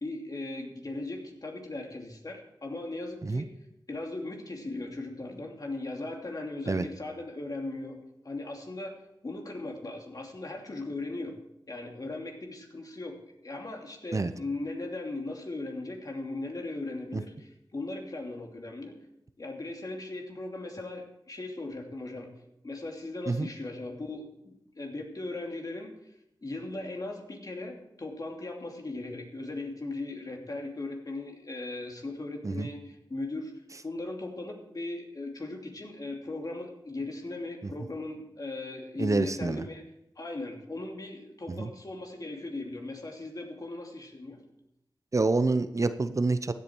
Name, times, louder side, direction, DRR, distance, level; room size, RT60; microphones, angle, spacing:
voice 1, 0.0-3.5 3.9-8.0 8.2-9.0 9.2-11.4 11.7-13.2 13.4-19.0 19.4-22.3 22.6-25.9 26.4-33.5 33.8-39.8 40.2-44.4, left 2 dB, 50° left, 1 dB, 2.8 m, -38 dB
voice 2, 39.0-39.6 41.5-41.7 45.1-46.5, right 3 dB, 40° right, 12 dB, 0.7 m, -27 dB
15.5 x 8.4 x 4.6 m, 0.81 s
cardioid pair, 45°, 8 cm